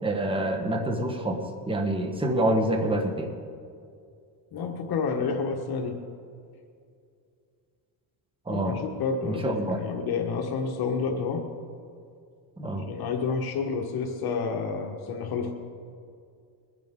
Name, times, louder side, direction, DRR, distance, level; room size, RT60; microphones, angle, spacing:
voice 1, 0.0-3.3 8.5-8.8 9.2-9.8 12.6-12.8, right 1 dB, 10° right, 3 dB, 1.4 m, -27 dB
voice 2, 4.5-6.0 8.5-11.4 12.9-15.5, left 5 dB, 60° left, 2 dB, 1.5 m, -29 dB
23.0 x 10.5 x 3.8 m, 2.3 s
cardioid pair, 125°, 42 cm